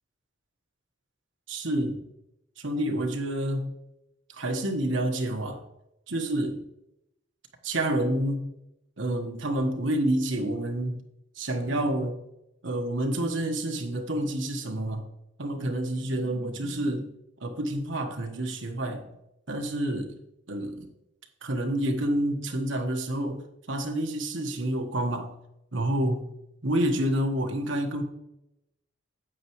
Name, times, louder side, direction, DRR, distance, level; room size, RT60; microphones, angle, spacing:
voice 1, 1.5-2.0 2.6-3.7 4.3-5.6 6.1-6.6 7.6-8.5 9.0-11.0 11.4-12.2 12.6-15.1 15.4-17.1 17.4-19.1 19.5-20.1 20.5-20.9 21.4-25.3 25.7-26.3 26.6-28.0, right 1 dB, 75° right, 4 dB, 1.3 m, -28 dB
9.1 x 8.2 x 3.1 m, 0.84 s
head